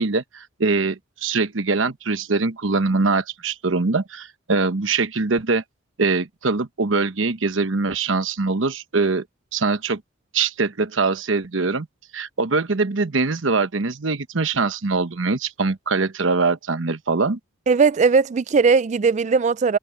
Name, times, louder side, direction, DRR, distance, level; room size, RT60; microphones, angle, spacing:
voice 1, 0.0-5.6 6.0-9.2 9.5-10.0 10.3-11.9 12.1-17.4, right 3 dB, 75° right, 1.0 m, -22 dB
voice 2, 17.7-19.8, right 5 dB, 35° right, 0.3 m, -18 dB
head